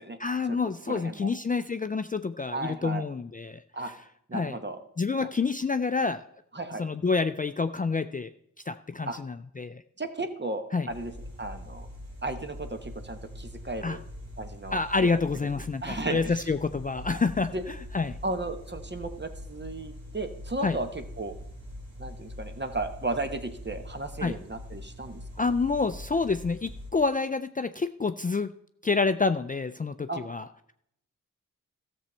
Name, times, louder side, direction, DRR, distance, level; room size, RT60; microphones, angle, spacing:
voice 1, 0.2-3.9 4.3-4.6 5.0-6.2 6.8-8.3 8.7-9.8 10.7-10.9 13.8-14.0 14.7-18.2 20.6-20.8 24.2-24.4 25.4-28.5 28.8-30.7, left 4 dB, 25° left, 10 dB, 0.4 m, -28 dB
voice 2, 0.9-1.3 2.5-3.0 3.7-3.9 4.3-4.8 5.2-5.3 6.5-6.8 9.1-9.2 10.0-11.1 11.4-11.9 12.2-14.0 14.4-15.1 15.8-16.5 17.5-17.6 18.2-21.3 22.0-25.2 30.1-30.2, right 2 dB, 35° right, 7 dB, 1.2 m, -34 dB
sound 1, 10.9-26.9, left 1 dB, 75° right, 3.3 m, -43 dB
13.0 x 7.1 x 4.4 m, 0.73 s
cardioid pair, 50°, 33 cm